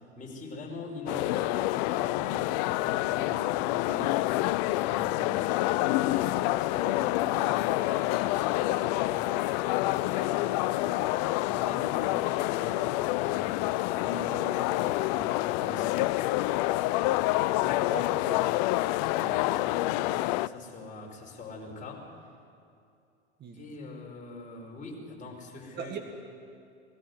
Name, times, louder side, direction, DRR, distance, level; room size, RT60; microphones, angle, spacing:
voice 1, 0.0-4.3 4.6-11.1 11.5-16.0 18.8-22.1 23.5-26.0, left 2 dB, 20° left, -2 dB, 5.2 m, -43 dB
sound 1, 1.1-20.5, left 18 dB, 40° left, 0.4 m, -27 dB
voice 2, 17.6-18.6 23.4-23.6 25.8-26.0, right 6 dB, 30° right, 4 dB, 1.9 m, -40 dB
20.5 x 14.5 x 9.4 m, 2.5 s
figure-of-eight pair, 95°, 35 cm